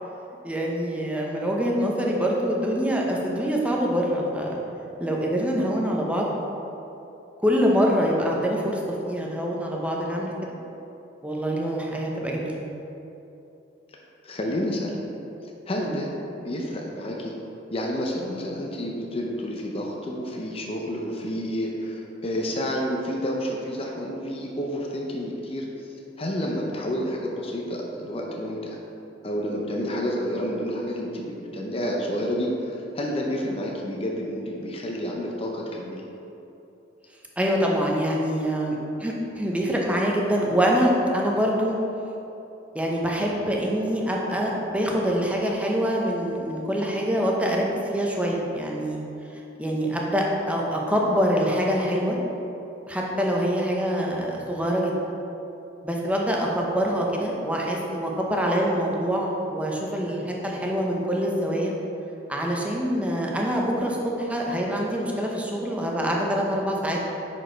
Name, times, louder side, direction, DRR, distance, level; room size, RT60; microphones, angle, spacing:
voice 1, 0.4-4.6 5.0-6.4 7.4-10.3 11.2-12.5 15.8-15.9 37.4-41.8 42.7-47.7 47.9-49.0 49.6-52.2 52.9-54.9 55.8-61.7 62.3-67.0, equal, 5° right, -2 dB, 0.8 m, -25 dB
voice 2, 14.2-15.0 15.7-16.1 16.4-17.3 17.7-25.6 26.2-28.8 29.2-36.0, equal, 30° left, -1 dB, 0.6 m, -29 dB
6.2 x 5.2 x 4.5 m, 2.9 s
head